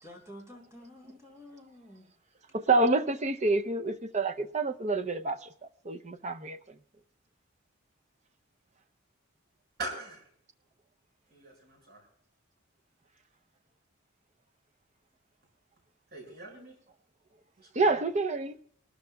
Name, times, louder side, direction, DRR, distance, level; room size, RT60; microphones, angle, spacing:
voice 1, 0.0-2.1, left 1 dB, 15° right, 4.3 m, -50 dB
voice 2, 2.7-5.5 5.8-6.8 17.7-18.6, right 3 dB, 35° right, 0.7 m, -28 dB
voice 3, 9.8-10.3 11.3-12.1 16.1-16.7 17.6-17.8, right 2 dB, 55° right, 6.4 m, -41 dB
26.5 x 13.0 x 2.3 m
head